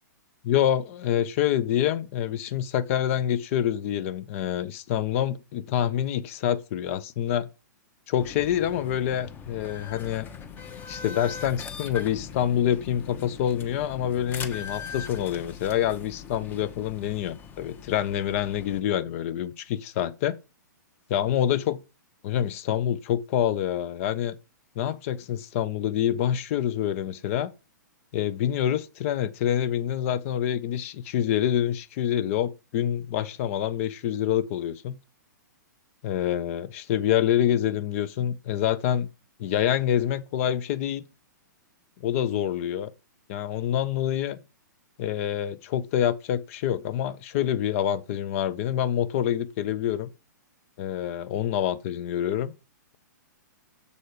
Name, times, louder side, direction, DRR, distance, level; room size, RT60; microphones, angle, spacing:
voice 1, 0.4-7.5 8.1-10.3 10.9-20.4 21.1-21.8 22.2-24.4 24.8-27.5 28.1-35.0 36.0-39.1 39.4-41.0 42.0-42.9 43.3-44.4 45.0-50.1 50.8-52.5, left 10 dB, 45° left, 0.7 m, -26 dB
sound 1, 8.2-18.8, left 6 dB, 20° left, 0.9 m, -41 dB
6.7 x 4.2 x 6.6 m
hypercardioid pair, 135°, 10 cm